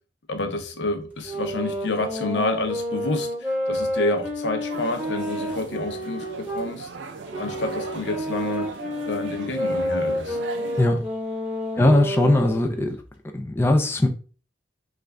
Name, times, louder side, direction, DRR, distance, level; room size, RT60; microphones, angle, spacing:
voice 1, 0.3-6.9 7.4-8.7 9.1-10.4 11.7-12.0, left 2 dB, 75° left, 0.7 m, -29 dB
sound 1, 1.2-6.7 7.3-12.6, equal, 10° right, 1.1 m, -29 dB
sound 2, 4.7-10.9, right 4 dB, 85° right, 0.4 m, -38 dB
voice 2, 11.8-13.0 13.3-14.1, left 1 dB, 15° left, 0.3 m, -20 dB
3.2 x 2.4 x 3.4 m
head